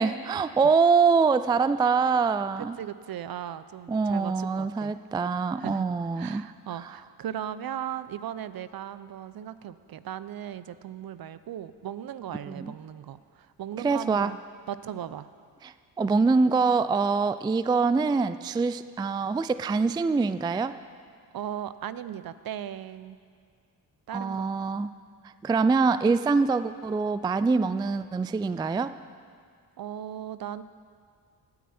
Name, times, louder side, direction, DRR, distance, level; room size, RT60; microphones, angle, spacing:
voice 1, 0.0-2.8 3.9-6.4 6.8-6.9 12.5-12.7 13.8-14.3 15.6-20.7 24.1-24.9 25.4-28.9, right 4 dB, 10° right, 13 dB, 0.3 m, -24 dB
voice 2, 2.8-4.9 5.6-5.9 6.1-14.4 14.7-15.3 21.3-23.2 24.1-24.4 29.8-30.6, right 10 dB, 55° right, 14 dB, 0.6 m, -37 dB
18.5 x 9.6 x 4.3 m, 2.1 s
supercardioid pair, 55°, 43 cm